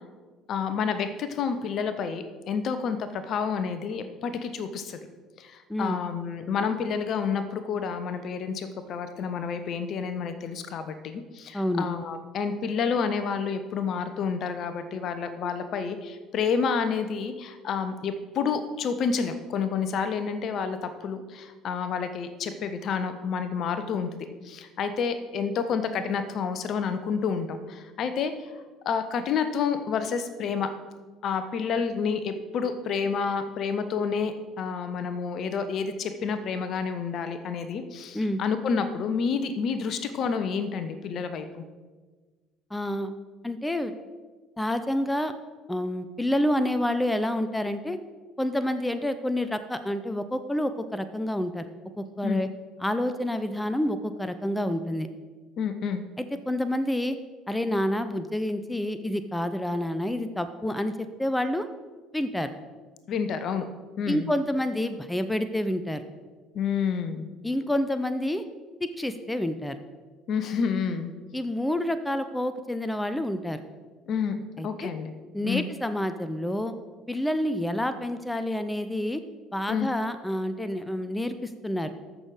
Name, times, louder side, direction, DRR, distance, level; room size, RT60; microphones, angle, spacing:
voice 1, 0.5-5.0 5.4-24.1 24.4-28.3 28.8-30.7 31.2-41.6 52.2-52.4 55.6-56.0 63.1-63.6 64.0-64.3 66.5-67.3 70.3-71.1 74.1-75.1 75.4-75.7 79.7-79.9, left 6 dB, 50° left, 10 dB, 0.9 m, -29 dB
voice 2, 5.7-6.0 11.5-11.9 38.1-38.4 42.7-43.1 43.4-43.9 44.6-45.3 45.7-48.0 48.4-51.7 52.0-52.5 52.8-55.1 56.2-57.2 57.5-61.7 62.1-62.5 64.1-66.0 67.4-68.4 68.8-69.8 71.3-73.6 74.6-74.9 75.3-76.7 77.1-79.2 79.5-81.9, left 1 dB, 10° left, 11 dB, 0.8 m, -28 dB
14.0 x 6.3 x 5.0 m, 1.4 s
figure-of-eight pair, 60°, 0 cm